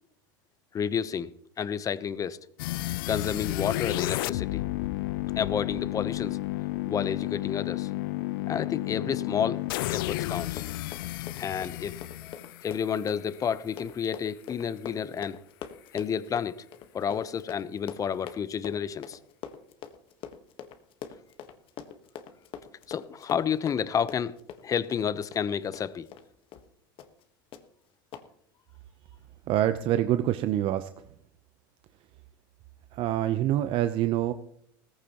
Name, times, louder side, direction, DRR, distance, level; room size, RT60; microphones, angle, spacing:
voice 1, 0.7-1.3 1.6-2.4 3.1-4.6 5.4-6.4 6.9-7.9 8.5-9.6 9.9-10.6 11.4-15.4 15.9-16.6 16.9-19.2 22.9-24.4 24.6-26.1, left 7 dB, 30° left, 15 dB, 0.8 m, -30 dB
sound 1, 2.6-13.5, left 18 dB, 80° left, 0.4 m, -32 dB
Run, 9.6-26.3 26.5-26.7 27.0-27.2 27.5-27.6 28.1-28.3, left 9 dB, 50° left, 1.3 m, -44 dB
voice 2, 29.5-30.9 32.9-34.3, right 12 dB, 50° right, 10 dB, 0.7 m, -26 dB
17.5 x 14.5 x 3.0 m, 0.71 s
supercardioid pair, 105°, 12 cm